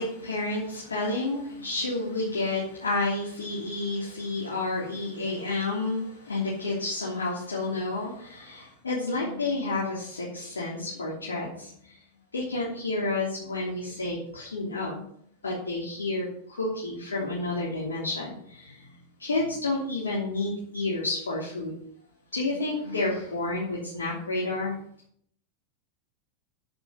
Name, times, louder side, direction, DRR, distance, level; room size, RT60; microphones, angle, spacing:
voice 1, 0.0-12.0 12.3-15.0 15.4-18.9 19.2-21.7 22.3-24.7, left 2 dB, 70° left, -5 dB, 3.2 m, -30 dB
9.7 x 8.9 x 5.4 m, 0.66 s
figure-of-eight pair, 90°, 0 cm